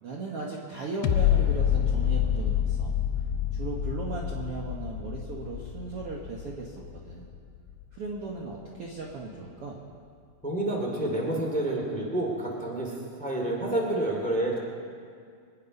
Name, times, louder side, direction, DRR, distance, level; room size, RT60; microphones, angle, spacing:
voice 1, 0.0-2.9 3.5-7.3 7.9-9.8, right 3 dB, 80° right, -2 dB, 1.3 m, -37 dB
sound 1, 1.0-8.1 8.5-8.6, left 9 dB, 80° left, 2.7 m, -28 dB
voice 2, 10.4-12.9 13.2-14.6, right 1 dB, 5° left, -1 dB, 1.6 m, -28 dB
24.0 x 9.8 x 5.4 m, 2.2 s
omnidirectional pair, 4.7 m